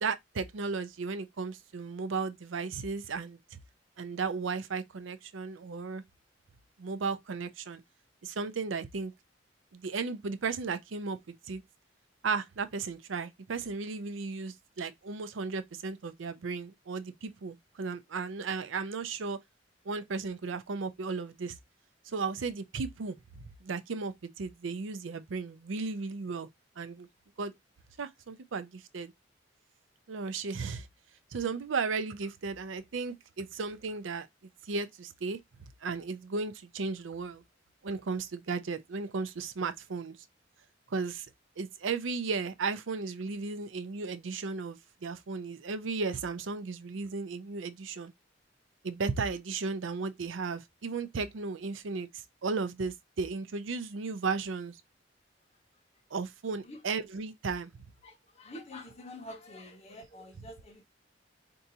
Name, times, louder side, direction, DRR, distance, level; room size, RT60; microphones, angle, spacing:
voice 1, 0.0-3.4 4.0-6.0 6.8-7.8 8.2-9.1 9.7-11.2 11.5-11.6 12.2-19.4 19.9-21.6 22.0-26.5 26.8-27.1 27.4-27.5 28.0-29.1 30.1-30.9 31.3-34.3 34.6-37.4 37.8-40.2 40.9-41.3 41.6-48.1 48.8-54.8 56.1-57.7, right 4 dB, 85° right, 0.5 m, -35 dB
voice 2, 58.0-60.8, left 1 dB, 35° left, 0.9 m, -47 dB
4.5 x 2.6 x 2.7 m
head